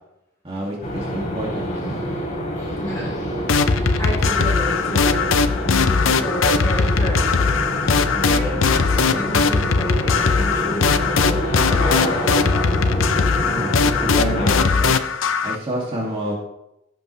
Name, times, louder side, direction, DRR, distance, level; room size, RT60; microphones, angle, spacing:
voice 1, 0.4-2.0 13.5-15.0 15.4-16.3, right 1 dB, 30° right, -4 dB, 2.3 m, -28 dB
sound 1, 0.8-14.6, equal, 40° left, 3.3 m, -26 dB
voice 2, 2.8-3.1 3.6-7.6 8.1-12.7, equal, 15° left, -5 dB, 4.4 m, -31 dB
sound 2, 3.5-15.6, left 4 dB, 70° left, 0.6 m, -19 dB
17.5 x 7.4 x 3.3 m, 0.85 s
head